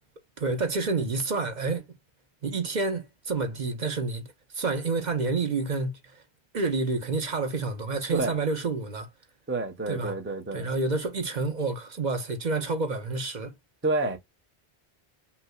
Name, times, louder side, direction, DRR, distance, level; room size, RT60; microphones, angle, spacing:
voice 1, 0.4-1.9 2.4-6.2 6.5-9.1 9.9-10.2 10.5-13.5, right 3 dB, 45° right, 0.9 m, -29 dB
voice 2, 9.5-10.7 13.8-14.2, right 2 dB, 15° right, 0.5 m, -28 dB
5.6 x 2.1 x 2.3 m
omnidirectional pair, 1.1 m